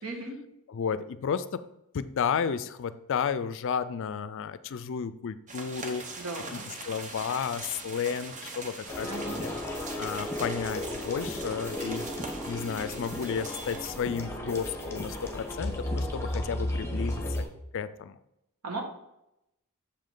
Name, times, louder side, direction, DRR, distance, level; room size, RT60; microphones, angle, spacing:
voice 1, 0.0-0.4 6.2-6.7 9.0-9.4 18.6-18.8, right 2 dB, 75° right, 2 dB, 1.5 m, -37 dB
voice 2, 0.7-1.7 1.9-6.1 6.5-9.1 9.4-9.5 9.9-12.1 12.4-17.2 17.7-18.2, left 6 dB, 60° left, 14 dB, 0.4 m, -32 dB
sound 1, 5.5-13.9, right 3 dB, 35° right, 0.9 m, -42 dB
sound 2, 8.9-17.4, left 1 dB, 10° left, 1.0 m, -34 dB
6.8 x 5.4 x 3.8 m, 0.84 s
head